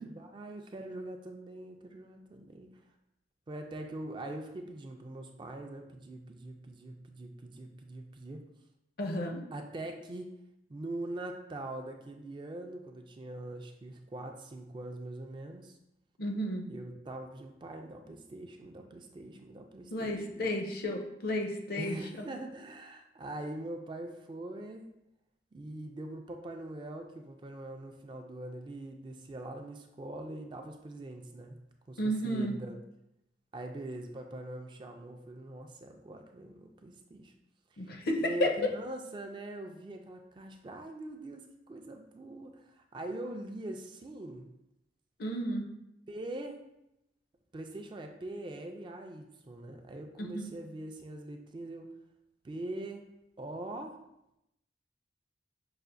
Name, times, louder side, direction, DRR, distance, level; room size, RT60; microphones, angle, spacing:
voice 1, 0.0-2.7 3.5-8.5 9.5-10.3 10.7-15.8 16.7-20.5 21.8-24.9 25.5-31.6 31.9-32.8 33.5-37.3 37.8-37.9 38.2-44.5 46.1-46.6 47.5-51.9 52.4-53.0 53.4-54.0, right 1 dB, 25° right, 4 dB, 0.3 m, -42 dB
voice 2, 9.0-9.4 16.2-16.6 19.9-22.0 32.0-32.6 37.8-38.5 45.2-45.7 50.2-50.5, equal, 55° left, 3 dB, 0.5 m, -32 dB
5.6 x 2.4 x 2.5 m, 0.85 s
head